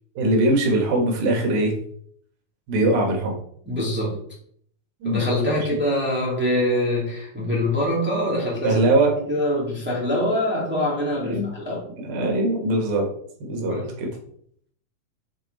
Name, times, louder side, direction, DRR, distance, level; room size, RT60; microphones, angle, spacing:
voice 1, 0.2-1.7 2.7-3.4 5.0-5.3 8.6-9.1 11.2-11.6 12.0-13.1 13.4-14.1, right 2 dB, 70° right, 1 dB, 3.3 m, -21 dB
voice 2, 3.7-4.2 5.0-11.9 13.7-13.9, left 1 dB, 5° right, -6 dB, 2.0 m, -24 dB
7.0 x 5.3 x 4.1 m, 0.65 s
omnidirectional pair, 4.4 m